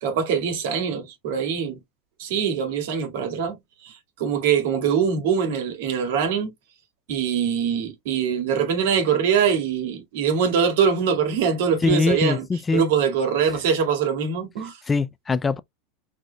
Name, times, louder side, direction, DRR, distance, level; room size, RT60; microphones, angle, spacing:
voice 1, 0.0-1.8 2.2-3.6 3.8-6.5 7.1-12.5 12.7-14.8, right 7 dB, 70° right, 2.0 m, -23 dB
voice 2, 11.8-12.8 14.9-15.6, left 4 dB, 20° left, 0.4 m, -22 dB
4.7 x 4.2 x 2.2 m
hypercardioid pair, 100°, 0 cm